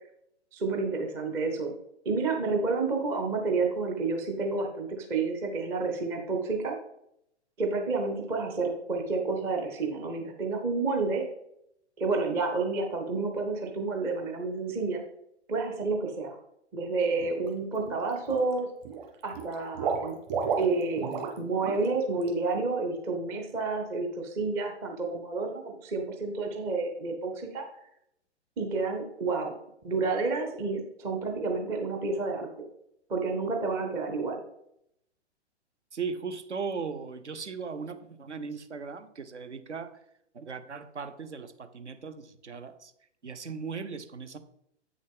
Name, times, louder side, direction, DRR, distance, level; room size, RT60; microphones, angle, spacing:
voice 1, 0.5-1.7 2.1-6.8 7.6-11.2 12.0-15.0 15.5-16.4 16.7-18.7 19.2-20.2 20.6-27.7 28.6-29.5 29.8-32.5 33.1-34.4, right 3 dB, 10° right, 0.4 m, -30 dB
Water / Liquid, 17.2-17.5 17.9-18.5 18.8-21.4 21.6-21.9 22.2-22.3, right 6 dB, 35° right, 1.6 m, -32 dB
voice 2, 35.9-40.0 40.3-42.9 43.2-44.4, right 5 dB, 75° right, 0.9 m, -38 dB
8.2 x 6.3 x 3.6 m
figure-of-eight pair, 120°, 35 cm